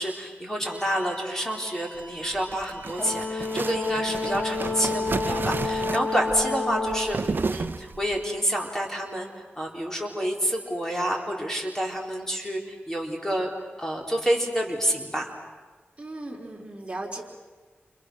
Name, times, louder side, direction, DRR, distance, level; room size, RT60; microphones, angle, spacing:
voice 1, 0.0-15.3, equal, 10° left, 0 dB, 4.3 m, -28 dB
sound 1, 0.6-8.9, right 1 dB, 55° left, 7.3 m, -48 dB
sound 2, 2.2-8.2, right 4 dB, 50° right, 0.8 m, -32 dB
Brass instrument, 3.0-7.2, left 3 dB, 35° left, 2.0 m, -29 dB
voice 2, 16.0-17.2, right 2 dB, 25° right, 0 dB, 4.3 m, -36 dB
29.5 x 29.5 x 6.5 m, 1.4 s
wide cardioid pair, 100°, 4 cm